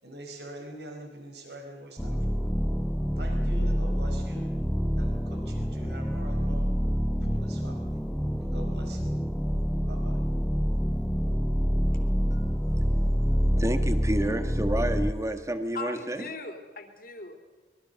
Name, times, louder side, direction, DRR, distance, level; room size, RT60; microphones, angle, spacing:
voice 1, 0.0-2.2 3.2-4.5 5.0-6.7 7.2-8.0 8.4-9.0 9.9-10.2, right 1 dB, 70° right, 2 dB, 5.0 m, -44 dB
sound 1, 2.0-15.1, equal, 5° left, 0.7 m, -27 dB
voice 2, 13.6-16.2, right 1 dB, 15° right, 8 dB, 1.7 m, -29 dB
voice 3, 15.7-17.4, left 3 dB, 55° left, 5 dB, 3.4 m, -39 dB
24.5 x 23.0 x 6.9 m, 1.3 s
head